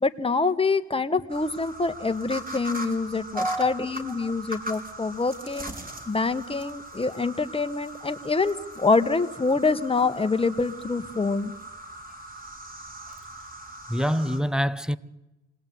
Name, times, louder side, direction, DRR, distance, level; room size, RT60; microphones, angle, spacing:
voice 1, 0.0-5.7 6.1-11.5, left 3 dB, 20° left, 1.5 m, -25 dB
sound 1, 1.3-14.4, right 1 dB, 30° right, 5.1 m, -40 dB
voice 2, 3.3-3.8 4.2-4.3 13.9-15.0, equal, ahead, 1.0 m, -26 dB
27.0 x 19.5 x 9.5 m
cardioid pair, 90°, 30 cm